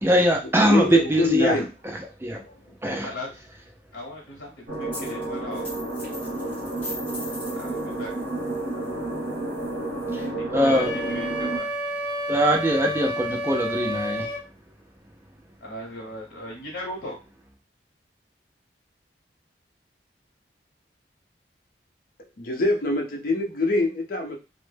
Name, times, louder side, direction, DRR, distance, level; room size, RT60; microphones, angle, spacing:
voice 1, 0.0-1.6 2.2-2.4 2.8-3.1 10.1-10.2 10.5-10.9 12.3-14.3, equal, 15° right, 1 dB, 0.4 m, -22 dB
voice 2, 0.6-1.7 2.4-2.8 22.4-24.4, left 2 dB, 50° left, 2 dB, 0.6 m, -24 dB
voice 3, 3.0-3.5 3.9-5.7 7.5-8.1 10.1-11.7 15.6-17.2, left 1 dB, 85° left, -2 dB, 0.8 m, -38 dB
sound 1, 4.7-11.6, right 2 dB, 65° right, 0.8 m, -31 dB
sound 2, 4.9-5.2 5.5-10.2, left 1 dB, 10° left, 1.2 m, -41 dB
Wind instrument woodwind instrument, 10.6-14.4, equal, 25° left, 0.9 m, -30 dB
2.1 x 2.0 x 3.2 m, 0.28 s
head